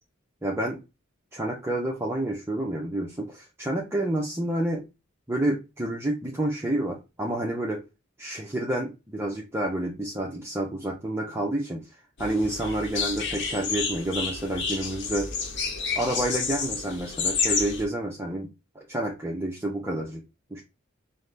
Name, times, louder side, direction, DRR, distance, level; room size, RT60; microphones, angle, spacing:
voice 1, 0.4-0.8 1.3-4.8 5.3-7.8 8.2-11.8 12.2-15.3 15.9-18.5 18.8-20.2 20.5-20.6, right 1 dB, 10° right, -2 dB, 0.6 m, -29 dB
sound 1, 12.2-17.8, left 5 dB, 60° left, 0.9 m, -30 dB
5.5 x 2.1 x 3.2 m, 0.26 s
head